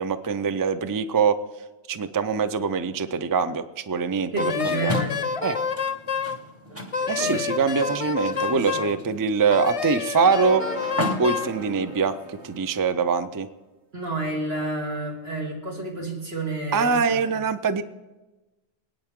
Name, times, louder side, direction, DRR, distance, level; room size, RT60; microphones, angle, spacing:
voice 1, 0.0-1.4 1.9-5.0 5.4-5.6 7.1-10.7 11.2-13.5 16.7-17.8, right 5 dB, 30° right, 12 dB, 0.4 m, -23 dB
voice 2, 4.3-5.3 7.2-7.5 13.9-17.4, right 2 dB, 65° right, -2 dB, 2.5 m, -30 dB
Wind instrument woodwind instrument, 4.4-6.4 6.9-9.0 9.5-11.5, left 6 dB, 40° left, 0.6 m, -28 dB
sound 1, 4.9-12.6, left 1 dB, 15° right, 1.3 m, -36 dB
sound 2, 10.2-13.2, right 3 dB, 80° right, 1.8 m, -39 dB
25.5 x 9.2 x 3.7 m, 1.1 s
omnidirectional pair, 1.1 m